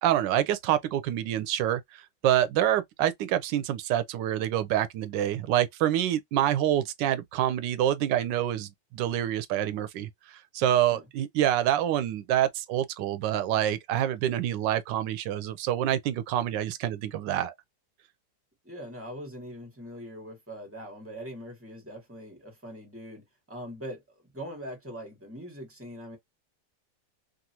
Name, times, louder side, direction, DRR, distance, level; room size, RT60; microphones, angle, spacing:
voice 1, 0.0-17.5, right 11 dB, 85° right, 1.3 m, -27 dB
voice 2, 18.6-26.2, equal, 10° right, 1.2 m, -42 dB
3.2 x 2.4 x 2.8 m
omnidirectional pair, 1.9 m